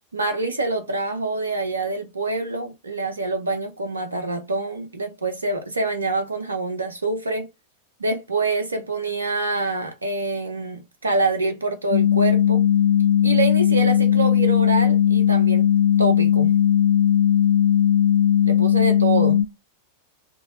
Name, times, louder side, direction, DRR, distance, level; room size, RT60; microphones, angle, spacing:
voice 1, 0.1-7.5 8.0-12.6 13.2-15.7 16.0-16.5 18.4-19.4, right 3 dB, 75° right, 0.4 m, -26 dB
sound 1, 11.9-19.4, left 10 dB, 40° left, 0.7 m, -18 dB
2.6 x 2.1 x 2.5 m
figure-of-eight pair, 90°, 0 cm